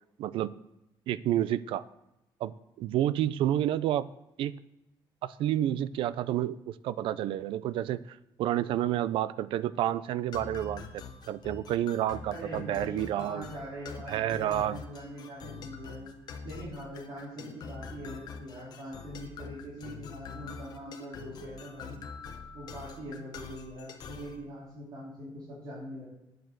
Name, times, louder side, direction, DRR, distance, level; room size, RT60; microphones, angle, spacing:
voice 1, 0.2-0.5 1.1-1.8 2.4-4.1 4.4-4.6 5.2-13.5 14.1-14.8, right 12 dB, 70° right, 17 dB, 0.5 m, -30 dB
sound 1, 10.3-24.4, left 5 dB, 50° left, 1.1 m, -45 dB
voice 2, 12.3-22.0 22.5-26.1, equal, 50° right, -8 dB, 3.8 m, -43 dB
9.4 x 7.6 x 6.7 m, 0.90 s
cardioid pair, 175°, 9 cm